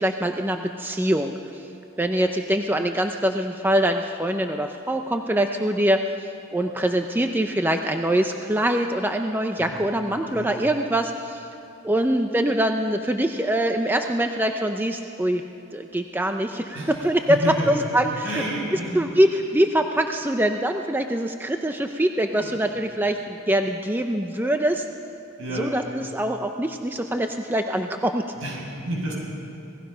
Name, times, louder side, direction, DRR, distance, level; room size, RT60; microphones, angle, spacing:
voice 1, 0.0-1.7 2.0-11.5 11.8-15.4 15.7-18.4 18.9-24.8 25.5-28.2, right 1 dB, 10° right, 5 dB, 0.6 m, -24 dB
voice 2, 16.7-19.1 22.4-22.5 25.4-25.7 28.4-29.1, right 1 dB, 65° right, -2 dB, 6.9 m, -30 dB
26.5 x 18.5 x 5.6 m, 2.8 s
head